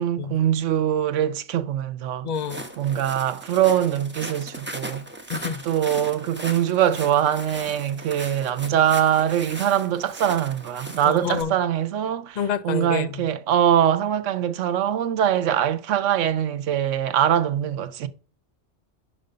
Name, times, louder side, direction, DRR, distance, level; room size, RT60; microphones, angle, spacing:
voice 1, 0.0-2.3 2.8-5.0 5.6-12.4 12.6-18.1, right 10 dB, 85° right, 1.1 m, -23 dB
voice 2, 2.2-2.7 5.3-5.6 11.0-11.5 12.4-13.2, left 7 dB, 55° left, 0.5 m, -28 dB
Walk footsteps, 2.3-11.4, right 1 dB, 10° right, 0.9 m, -38 dB
5.9 x 5.2 x 6.6 m
omnidirectional pair, 1.2 m